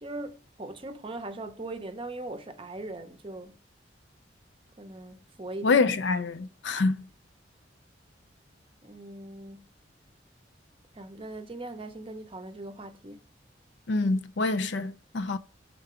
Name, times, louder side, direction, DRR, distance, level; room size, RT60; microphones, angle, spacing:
voice 1, 0.0-3.6 4.8-5.8 8.8-9.7 10.9-13.2, right 2 dB, 30° right, 0.6 m, -40 dB
voice 2, 5.6-7.1 13.9-15.4, left 3 dB, 75° left, 0.5 m, -26 dB
5.6 x 3.8 x 4.9 m
head